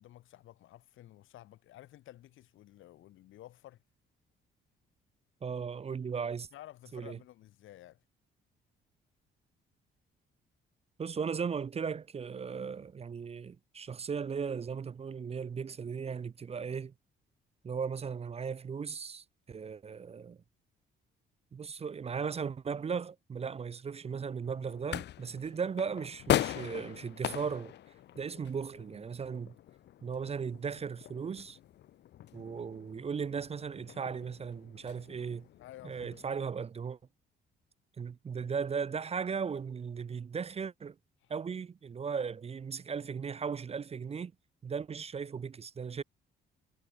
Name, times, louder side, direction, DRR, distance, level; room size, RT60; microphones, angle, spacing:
voice 1, 0.0-3.8 6.5-8.0 35.6-36.2 38.4-38.5 41.2-41.3, left 14 dB, 85° left, 4.6 m, -53 dB
voice 2, 5.4-6.5 6.9-7.2 11.0-16.9 17.6-20.4 21.5-27.7 28.1-29.5 30.0-31.6 32.3-35.5 35.8-37.0 38.0-41.0 41.3-44.3 44.6-46.0, right 6 dB, 30° right, 0.5 m, -37 dB
sound 1, 24.4-36.4, left 12 dB, 60° left, 0.5 m, -39 dB
cardioid pair, 90°, 20 cm